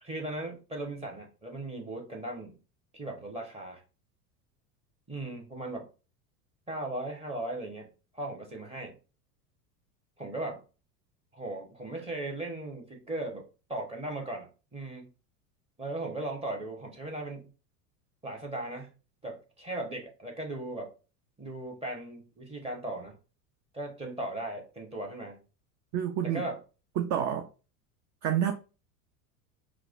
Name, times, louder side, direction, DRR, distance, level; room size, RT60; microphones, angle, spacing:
voice 1, 0.0-2.6 2.9-3.8 5.1-5.9 6.7-7.9 8.1-9.0 10.2-10.6 11.3-15.1 15.8-17.5 18.2-18.9 19.2-20.9 21.4-23.2 23.7-25.4 26.2-26.6, right 2 dB, 15° right, 1.0 m, -37 dB
voice 2, 25.9-26.4 27.0-27.5 28.2-28.5, right 9 dB, 40° right, 0.5 m, -28 dB
4.6 x 2.2 x 2.5 m
hypercardioid pair, 90°, 47 cm